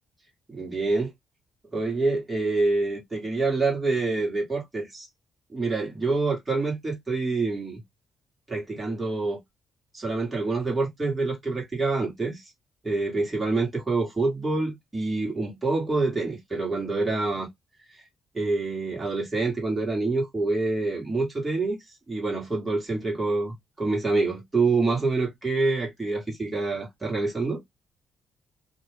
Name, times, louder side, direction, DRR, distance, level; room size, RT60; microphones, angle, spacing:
voice 1, 0.5-1.1 1.7-5.1 5.5-7.8 8.5-9.4 9.9-12.5 12.8-17.5 18.3-21.8 22.1-27.6, right 3 dB, 15° right, 1.4 m, -26 dB
2.5 x 2.3 x 3.3 m
cardioid pair, 115°, 0 cm